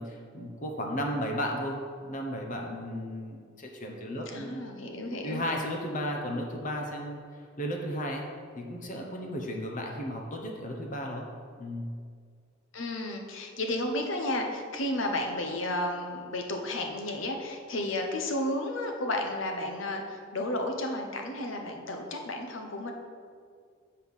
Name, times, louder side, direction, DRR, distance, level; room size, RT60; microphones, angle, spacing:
voice 1, 0.0-4.6 5.2-7.2 7.6-8.3 8.5-11.2 11.6-11.9, equal, 40° left, 1 dB, 0.9 m, -34 dB
voice 2, 4.3-5.4 12.7-22.9, left 1 dB, 70° left, 3 dB, 1.0 m, -32 dB
8.1 x 4.4 x 5.5 m, 2.1 s
head